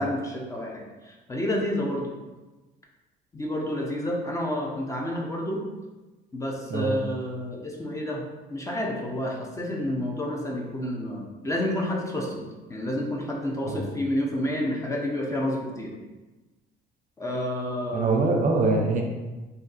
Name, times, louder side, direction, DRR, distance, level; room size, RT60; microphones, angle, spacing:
voice 1, 0.0-2.1 3.3-5.6 6.3-8.2 8.5-15.9 17.2-18.1, left 1 dB, 20° left, -1 dB, 0.6 m, -29 dB
voice 2, 17.9-19.0, right 3 dB, 50° right, 2 dB, 0.5 m, -23 dB
2.6 x 2.5 x 4.0 m, 1.2 s
cardioid pair, 110°, 17 cm